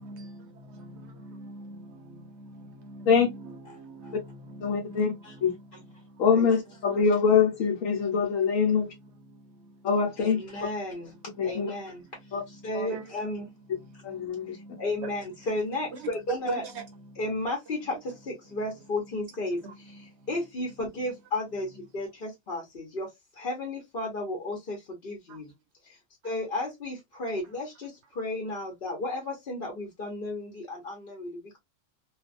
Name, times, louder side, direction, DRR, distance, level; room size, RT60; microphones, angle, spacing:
voice 1, 0.0-0.3 0.8-5.9 12.9-13.0 14.1-14.8 16.5-16.8 19.6-19.7, right 3 dB, 65° right, 0.9 m, -42 dB
voice 2, 4.6-5.1 5.4-5.5 6.2-8.9 9.8-10.4 11.4-11.7 12.3-12.4 12.7-12.9 14.0-14.6, left 6 dB, 80° left, 1.1 m, -24 dB
voice 3, 10.2-11.0 11.4-11.9 12.6-13.4 14.8-16.6 17.2-17.8 18.5-19.6 20.3-21.7 21.9-22.1 22.5-23.1 23.4-24.8 25.0-25.1 26.2-26.9 27.2-27.9 28.2-30.9 31.2-31.3, left 2 dB, 45° left, 1.0 m, -32 dB
2.6 x 2.3 x 2.4 m
omnidirectional pair, 1.4 m